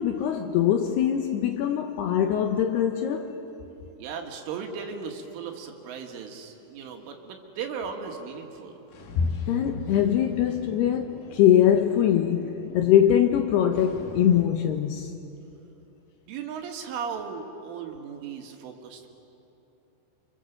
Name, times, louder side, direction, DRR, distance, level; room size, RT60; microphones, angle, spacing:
voice 1, 0.0-3.3 9.2-15.1, left 10 dB, 75° left, 2.5 m, -22 dB
voice 2, 4.0-8.8 16.3-19.1, right 6 dB, 80° right, 4.4 m, -36 dB
sound 1, 8.9-14.5, left 3 dB, 60° left, 2.9 m, -44 dB
29.0 x 26.0 x 7.6 m
omnidirectional pair, 5.7 m